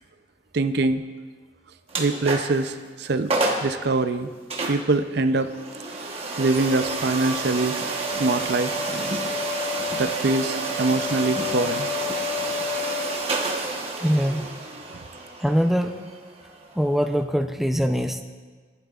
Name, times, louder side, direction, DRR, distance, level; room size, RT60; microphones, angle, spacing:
voice 1, 0.5-1.0 2.0-3.3 3.6-4.3 4.7-5.5 6.4-7.8 8.2-8.7 10.0-11.9 14.9-15.0, right 3 dB, 55° right, 9 dB, 0.5 m, -23 dB
sound 1, 1.9-2.7 3.0-3.1 3.3-3.7 4.5-17.2, right 1 dB, 30° right, 1.2 m, -29 dB
voice 2, 14.0-14.5 15.4-16.0 16.7-18.2, equal, ahead, 5 dB, 0.5 m, -22 dB
18.5 x 11.5 x 2.4 m, 1.5 s
head